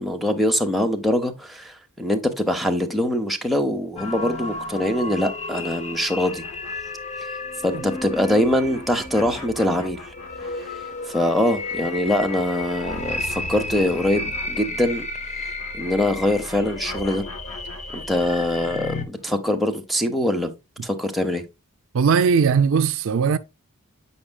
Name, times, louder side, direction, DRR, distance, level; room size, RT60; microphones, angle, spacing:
voice 1, 0.0-6.4 7.6-10.0 11.1-15.1 15.7-17.2 17.9-20.5 20.8-21.4, left 1 dB, ahead, 0.7 m, -23 dB
sound 1, 4.0-19.0, left 2 dB, 30° left, 0.7 m, -33 dB
sound 2, 6.1-15.1 15.4-19.0, left 2 dB, 90° left, 2.2 m, -41 dB
voice 2, 21.9-23.4, right 6 dB, 60° right, 0.4 m, -18 dB
8.4 x 5.4 x 2.3 m
head